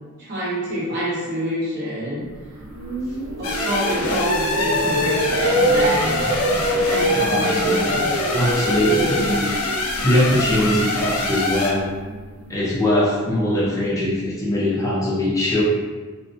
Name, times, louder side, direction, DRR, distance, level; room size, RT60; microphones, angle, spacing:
voice 1, 0.2-2.3 3.4-6.2 6.8-7.9, equal, 50° right, -8 dB, 0.9 m, -27 dB
sound 1, 2.4-12.5, right 1 dB, 80° right, 0.5 m, -25 dB
sound 2, 3.4-11.7, left 2 dB, 80° left, 0.4 m, -25 dB
voice 2, 7.1-9.4 10.0-11.9 12.5-15.6, left 1 dB, 15° left, -7 dB, 0.4 m, -21 dB
2.6 x 2.0 x 2.7 m, 1.4 s
head